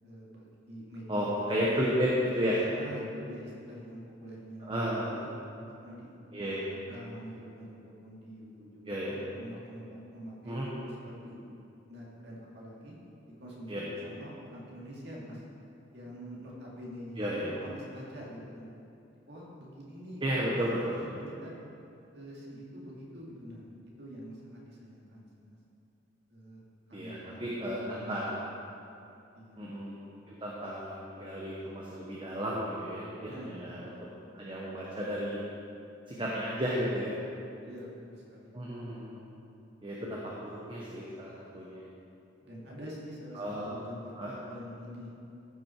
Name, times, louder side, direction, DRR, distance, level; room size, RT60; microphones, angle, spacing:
voice 1, 0.0-1.3 1.6-1.8 2.8-4.7 5.0-5.3 5.8-11.6 11.9-13.0 13.4-15.4 15.9-18.7 19.3-20.7 21.1-21.6 22.1-23.7 24.0-25.6 26.3-26.6 26.9-28.5 29.3-29.7 33.2-34.1 37.6-38.7 42.4-45.1, equal, 60° right, -4 dB, 2.3 m, -46 dB
voice 2, 1.1-2.6 4.6-5.1 6.3-6.6 8.9-9.1 10.4-10.7 13.7-13.8 17.2-17.5 20.2-21.2 26.9-28.4 29.6-30.0 30.3-33.9 34.3-35.4 36.1-37.1 38.5-39.2 39.8-41.9 43.3-43.7 44.2-44.3, equal, 25° right, -5 dB, 1.0 m, -33 dB
14.5 x 6.1 x 4.5 m, 2.7 s
head